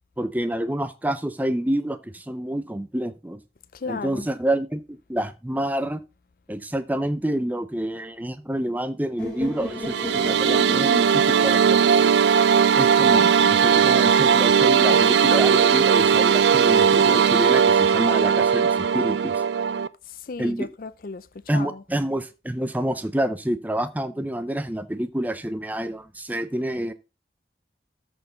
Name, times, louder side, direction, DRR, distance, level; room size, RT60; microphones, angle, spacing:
voice 1, 0.2-3.4 3.9-6.0 6.5-12.1 12.7-19.4 20.4-20.7 21.5-26.9, right 1 dB, 10° right, 0.6 m, -28 dB
voice 2, 3.7-4.3 20.1-21.8, left 4 dB, 55° left, 0.5 m, -35 dB
sound 1, 9.2-13.1, left 1 dB, 5° left, 3.9 m, -36 dB
sound 2, 9.7-19.9, right 7 dB, 80° right, 0.4 m, -18 dB
13.0 x 4.5 x 3.9 m
head